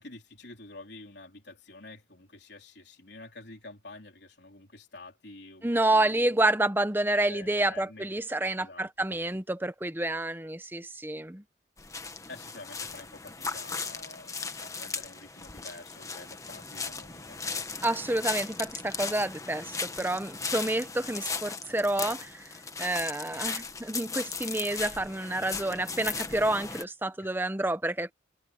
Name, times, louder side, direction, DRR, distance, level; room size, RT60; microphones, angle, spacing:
voice 1, 0.0-6.5 7.3-8.1 8.6-8.9 12.3-14.3 14.6-17.4 23.3-23.6 27.2-27.4, left 2 dB, 60° left, 4.0 m, -48 dB
voice 2, 5.6-11.4 17.8-22.5 22.8-28.1, right 1 dB, 10° right, 0.9 m, -29 dB
sound 1, 11.8-26.8, left 4 dB, 15° left, 1.3 m, -37 dB
head